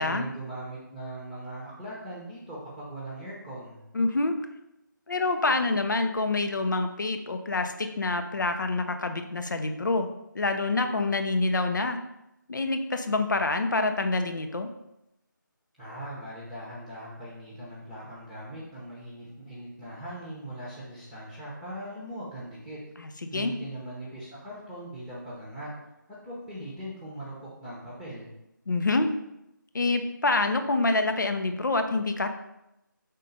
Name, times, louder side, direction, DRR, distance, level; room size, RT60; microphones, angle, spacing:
voice 1, 0.0-3.8 15.8-22.8 23.3-25.7 26.1-28.3, right 1 dB, 5° right, -7 dB, 1.0 m, -40 dB
voice 2, 3.9-4.4 5.1-10.1 10.3-12.0 12.5-14.7 23.0-23.5 28.7-29.1 29.7-32.3, left 3 dB, 65° left, 7 dB, 0.8 m, -26 dB
5.5 x 3.8 x 5.4 m, 0.86 s
figure-of-eight pair, 160°, 11 cm